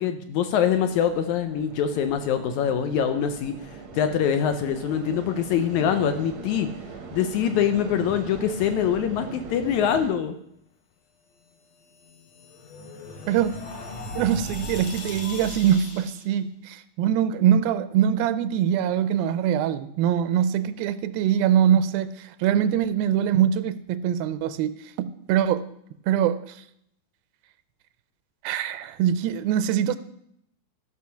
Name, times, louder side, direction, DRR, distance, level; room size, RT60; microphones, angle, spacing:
voice 1, 0.0-6.7 7.1-10.3, left 8 dB, 80° left, 9 dB, 1.7 m, -24 dB
sound 1, 0.6-10.1, right 4 dB, 65° right, 1.2 m, -40 dB
sound 2, 11.8-16.3, left 2 dB, 65° left, 1.3 m, -38 dB
voice 2, 14.1-25.7 26.1-26.6 28.4-30.0, right 9 dB, 85° right, 13 dB, 2.4 m, -23 dB
13.5 x 6.5 x 5.7 m, 0.73 s
omnidirectional pair, 4.1 m